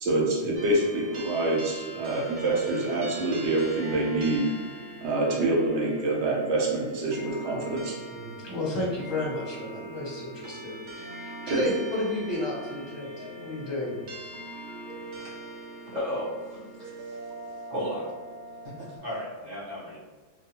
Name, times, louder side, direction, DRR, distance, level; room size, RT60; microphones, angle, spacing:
voice 1, 0.0-4.5 5.0-7.9 11.5-11.6, right 2 dB, 70° right, -2 dB, 0.9 m, -26 dB
sound 1, 0.5-19.0, right 1 dB, 55° right, 0.5 m, -41 dB
voice 2, 8.1-14.0, left 2 dB, 25° left, -5 dB, 0.7 m, -32 dB
voice 3, 15.9-17.2 17.7-18.0 18.6-20.0, equal, 40° right, -9 dB, 0.9 m, -35 dB
2.4 x 2.3 x 2.8 m, 1.2 s
omnidirectional pair, 1.3 m